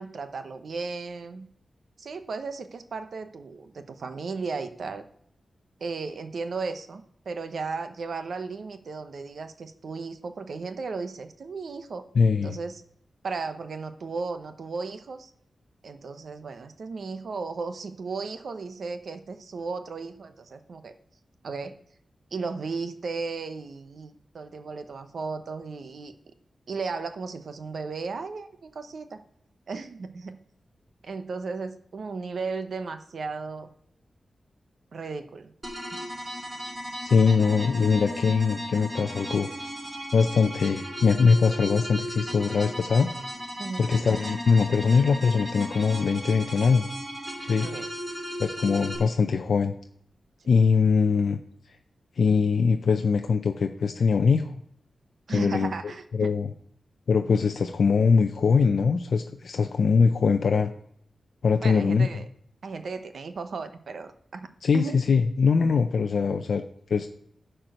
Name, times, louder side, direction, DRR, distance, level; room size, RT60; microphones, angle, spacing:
voice 1, 0.0-1.5 2.0-5.0 5.8-12.0 12.4-12.8 13.2-15.3 15.8-20.9 21.4-21.7 22.3-26.1 26.7-29.2 29.7-30.4 31.0-33.7 34.9-35.5 35.9-36.0 43.6-44.0 47.6-47.9 55.3-56.3 61.6-62.3 62.6-64.5 64.7-65.0, right 4 dB, 65° right, 9 dB, 0.8 m, -35 dB
voice 2, 12.1-12.6 37.0-39.5 40.1-43.1 43.8-46.9 47.4-47.7 48.4-49.7 50.5-51.4 51.7-51.8 52.2-54.5 55.3-56.5 57.1-60.7 61.4-62.1 64.6-66.6 66.9-67.1, left 5 dB, 70° left, 6 dB, 0.5 m, -22 dB
sound 1, 35.6-49.0, equal, 30° right, 2.7 m, -36 dB
10.5 x 4.5 x 6.6 m, 0.69 s
wide cardioid pair, 135°, 0 cm